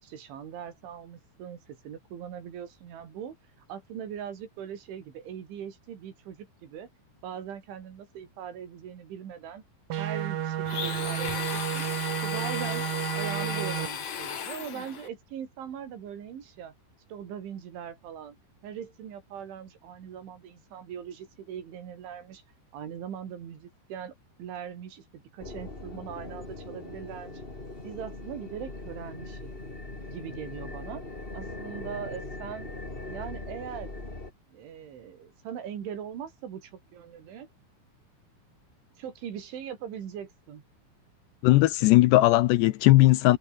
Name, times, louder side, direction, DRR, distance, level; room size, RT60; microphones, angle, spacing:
voice 1, 0.0-3.4 3.7-6.9 7.2-9.6 10.0-11.9 12.2-12.9 13.1-16.7 17.1-18.4 18.6-22.4 22.7-27.4 27.8-29.5 30.1-31.0 31.3-32.7 33.1-33.9 34.5-37.5 39.0-40.6, right 8 dB, 80° right, 5.7 m, -40 dB
sound 1, 9.9-13.9, right 11 dB, 60° right, 3.0 m, -31 dB
Domestic sounds home sounds, 10.6-15.1, left 7 dB, 45° left, 3.3 m, -35 dB
sound 2, 25.4-34.3, left 2 dB, 15° left, 2.8 m, -40 dB
voice 2, 41.4-43.4, left 18 dB, 80° left, 2.7 m, -18 dB
omnidirectional pair, 5.4 m